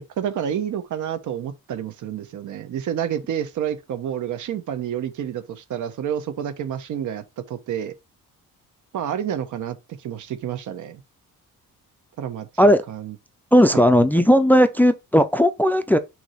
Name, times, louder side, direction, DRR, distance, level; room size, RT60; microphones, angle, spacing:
voice 1, 0.0-7.9 8.9-11.0 12.2-13.1 13.7-13.8, right 9 dB, 65° right, 1.0 m, -29 dB
voice 2, 13.5-16.0, equal, 5° left, 0.4 m, -16 dB
6.2 x 2.8 x 5.6 m
cardioid pair, 140°, 32 cm